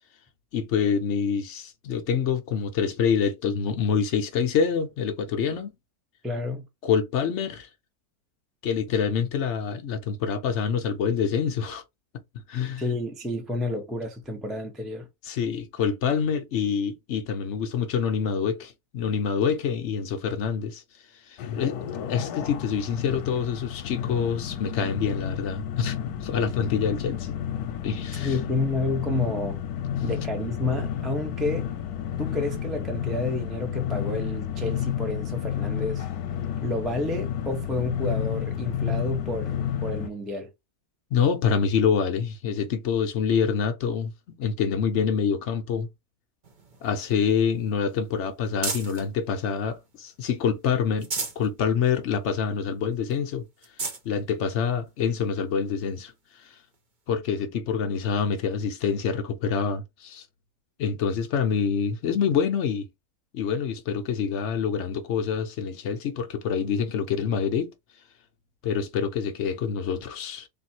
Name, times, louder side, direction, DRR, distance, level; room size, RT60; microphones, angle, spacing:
voice 1, 0.5-5.7 6.8-7.7 8.6-11.8 12.5-12.8 15.2-20.8 21.3-21.8 22.1-27.4 27.8-28.4 41.1-45.9 46.8-51.1 51.4-53.4 54.0-56.1 56.4-56.5 57.1-60.3 60.8-62.9 63.3-67.7 68.6-70.5, left 6 dB, 60° left, 0.8 m, -26 dB
voice 2, 6.2-6.7 12.8-15.1 28.1-29.6 30.0-31.7 32.2-36.1 36.6-40.5, left 2 dB, ahead, 0.6 m, -30 dB
sound 1, 21.4-40.1, left 9 dB, 85° left, 1.1 m, -31 dB
sound 2, 46.4-49.1 49.6-50.4 50.8-51.5 51.9-52.0 52.4-52.5 53.1-53.2 53.6-54.1 54.9-55.0 56.7-56.8, right 3 dB, 40° right, 0.9 m, -35 dB
3.6 x 2.6 x 4.3 m
omnidirectional pair, 1.6 m